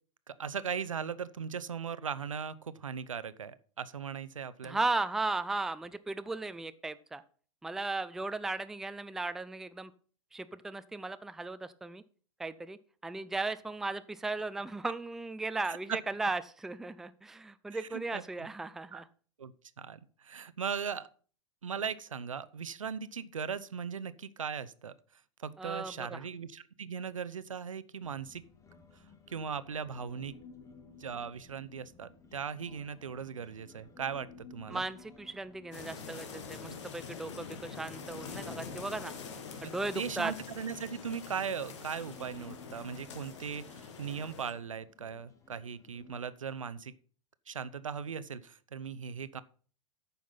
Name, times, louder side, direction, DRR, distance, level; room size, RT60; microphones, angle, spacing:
voice 1, 0.3-4.8 15.7-16.0 17.7-18.2 18.9-19.0 19.4-21.1 21.6-24.9 25.4-28.4 29.3-30.3 31.0-34.8 39.9-46.9 47.5-49.4, right 6 dB, 80° right, 16 dB, 0.6 m, -38 dB
voice 2, 4.6-7.2 7.6-9.9 10.3-12.0 12.4-12.8 13.0-19.1 25.6-26.2 34.7-39.1 39.6-40.3, right 3 dB, ahead, 12 dB, 0.4 m, -36 dB
Human voice, 28.0-46.2, left 4 dB, 20° left, 1.2 m, -56 dB
sound 1, 35.7-44.5, left 5 dB, 60° left, 1.6 m, -45 dB
9.2 x 5.8 x 5.5 m, 0.43 s
figure-of-eight pair, 95°, 17 cm